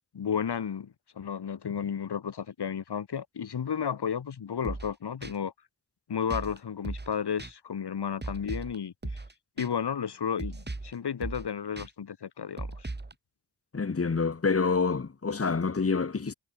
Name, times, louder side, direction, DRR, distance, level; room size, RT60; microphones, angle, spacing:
voice 1, 0.1-5.5 6.1-9.2 9.6-12.9, left 7 dB, 70° left, 3.0 m, -33 dB
sound 1, 4.6-4.9 5.2-5.3 6.3-6.6 6.8-7.1 7.4-7.5 8.2-8.8 9.0-9.3 9.6-9.7 10.4-10.9 11.2-11.5 11.8-11.9 12.6-13.1, right 2 dB, 25° right, 3.0 m, -37 dB
voice 2, 13.7-16.3, left 4 dB, 35° left, 1.6 m, -27 dB
cardioid pair, 50°, 41 cm